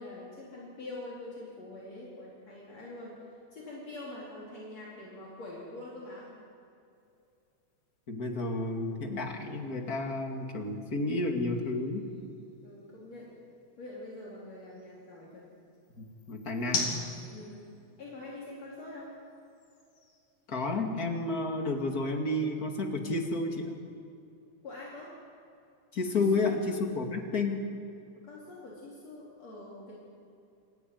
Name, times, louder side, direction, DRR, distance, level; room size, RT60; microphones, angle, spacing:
voice 1, 0.0-3.2 3.5-6.3 12.6-13.3 13.8-15.4 17.3-17.7 18.0-19.2 24.6-25.2 26.1-26.5 28.3-30.0, left 2 dB, 60° left, -6 dB, 5.2 m, -44 dB
sound 1, 6.9-21.2, left 3 dB, 80° left, 5.1 m, -44 dB
voice 2, 8.1-12.1 16.0-17.0 20.5-23.8 25.9-27.7, left 2 dB, 30° left, 3 dB, 2.6 m, -31 dB
27.5 x 15.0 x 9.5 m, 2.6 s
omnidirectional pair, 3.4 m